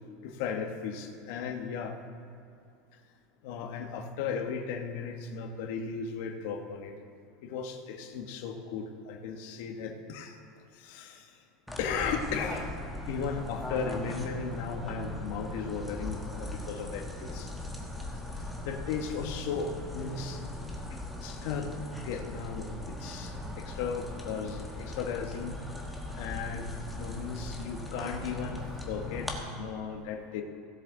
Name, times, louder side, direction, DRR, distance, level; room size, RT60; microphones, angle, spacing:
voice 1, 0.2-2.0 3.4-7.0 7.4-10.4 10.7-11.4 11.8-12.7 13.1-17.5 18.3-20.4 20.9-25.6 26.2-30.4, left 6 dB, 65° left, 4 dB, 1.1 m, -36 dB
sound 1, 11.7-29.4, left 1 dB, ahead, 1.1 m, -39 dB
16.5 x 7.4 x 3.8 m, 2.5 s
supercardioid pair, 150°, 0 cm